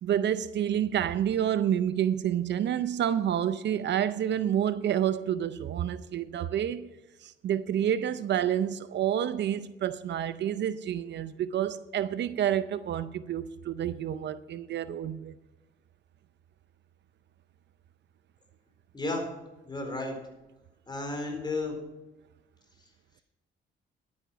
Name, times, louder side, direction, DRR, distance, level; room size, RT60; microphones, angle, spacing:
voice 1, 0.0-6.9 7.2-15.3, right 10 dB, 65° right, 0.6 m, -29 dB
voice 2, 18.9-19.3 19.7-20.1 20.9-21.8, left 2 dB, 20° left, 4.1 m, -32 dB
11.5 x 9.5 x 5.8 m
cardioid pair, 90°, 20 cm